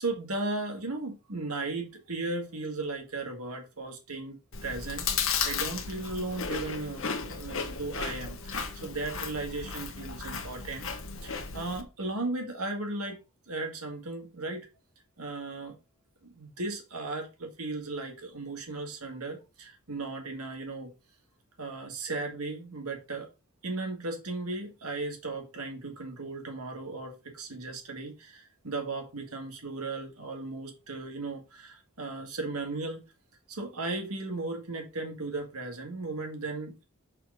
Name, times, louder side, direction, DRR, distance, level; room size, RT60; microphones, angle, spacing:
voice 1, 0.0-4.3 4.6-5.1 5.4-10.9 11.2-13.2 13.5-14.7 15.2-15.7 16.2-20.9 21.6-23.3 23.6-33.0 33.5-36.8, right 2 dB, 80° right, 3 dB, 1.8 m, -36 dB
Chewing mastication, 4.5-11.8, left 5 dB, 60° left, 1.1 m, -34 dB
6.4 x 4.2 x 4.9 m, 0.29 s
head